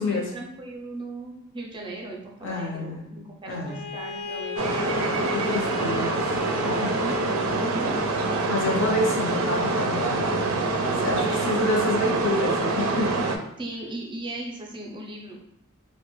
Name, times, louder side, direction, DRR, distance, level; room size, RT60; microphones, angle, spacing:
voice 1, 0.0-4.8 5.1-5.3 6.6-7.9 11.1-12.2 13.6-15.4, right 1 dB, 25° right, -1 dB, 0.5 m, -38 dB
voice 2, 2.4-3.0 3.5-3.8 5.3-6.1 6.6-6.9 8.5-10.6 11.0-13.2, left 2 dB, 65° left, 0 dB, 0.7 m, -28 dB
Bowed string instrument, 3.7-7.9, left 7 dB, 30° left, 0.4 m, -36 dB
sound 1, 4.6-13.4, right 3 dB, 80° right, 0.4 m, -25 dB
2.9 x 2.1 x 3.0 m, 0.77 s
head